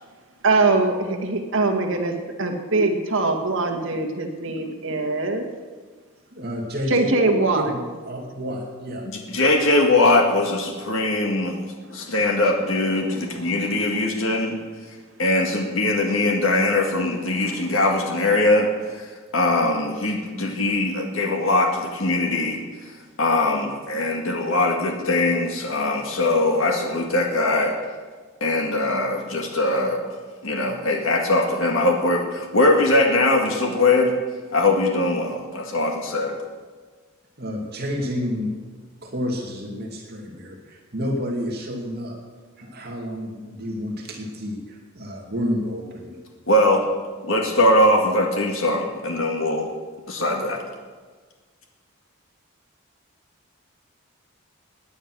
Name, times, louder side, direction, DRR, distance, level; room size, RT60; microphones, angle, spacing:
voice 1, 0.4-5.5 6.9-7.7 13.0-14.1 17.4-17.5, right 3 dB, 65° right, 3 dB, 2.1 m, -23 dB
voice 2, 6.3-7.1 7.5-9.1 37.4-38.5 39.0-42.2 42.6-46.2, equal, 50° right, 0 dB, 2.6 m, -30 dB
voice 3, 9.3-11.7 11.9-14.6 15.2-19.1 19.3-22.6 23.2-27.7 28.4-30.0 30.4-34.1 34.5-36.4 46.5-46.8 47.2-49.7 50.1-50.6, left 2 dB, 70° left, 2 dB, 2.0 m, -21 dB
18.0 x 10.0 x 6.3 m, 1.4 s
head